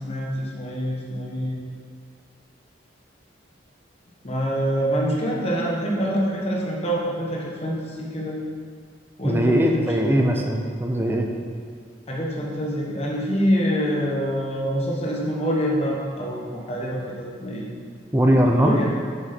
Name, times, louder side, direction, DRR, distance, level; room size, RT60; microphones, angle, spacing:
voice 1, 0.0-1.6 4.2-8.4 9.2-10.5 12.1-17.7 18.5-18.9, equal, 35° left, -3 dB, 1.2 m, -26 dB
voice 2, 9.2-11.3 18.1-18.8, equal, 10° right, 2 dB, 0.6 m, -20 dB
6.7 x 6.3 x 4.3 m, 2.1 s
head